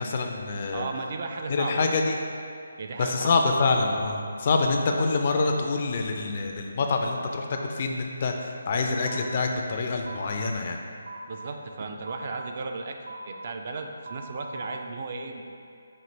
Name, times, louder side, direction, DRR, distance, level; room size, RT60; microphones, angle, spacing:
voice 1, 0.0-0.9 1.5-2.2 3.0-10.8, left 3 dB, 45° left, 3 dB, 0.3 m, -26 dB
voice 2, 0.7-1.9 2.8-3.4 11.3-13.0 13.3-15.4, right 3 dB, 45° right, 4 dB, 0.3 m, -35 dB
sound 1, 9.1-9.2 10.1-10.2 11.1-11.2 12.1-12.2 13.0-13.2 14.0-14.6, right 3 dB, 85° right, 0.7 m, -41 dB
5.3 x 2.5 x 3.1 m, 2.3 s
figure-of-eight pair, 155°, 0 cm